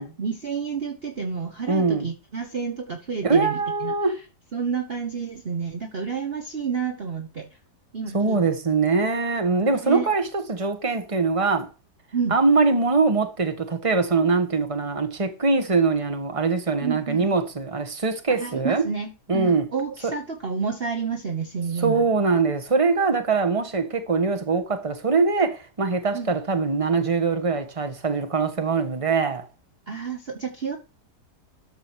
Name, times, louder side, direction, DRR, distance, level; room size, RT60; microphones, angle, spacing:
voice 1, 0.0-3.9 4.5-7.5 7.9-8.4 9.6-10.1 12.1-12.3 16.8-17.3 18.4-22.1 26.1-26.3 29.9-30.8, right 6 dB, 40° right, 1.3 m, -30 dB
voice 2, 1.7-2.1 3.2-4.2 8.1-11.7 12.3-18.8 19.3-19.6 20.0-20.1 21.8-29.4, right 4 dB, 20° right, 1.5 m, -22 dB
13.0 x 5.0 x 6.3 m
omnidirectional pair, 1.8 m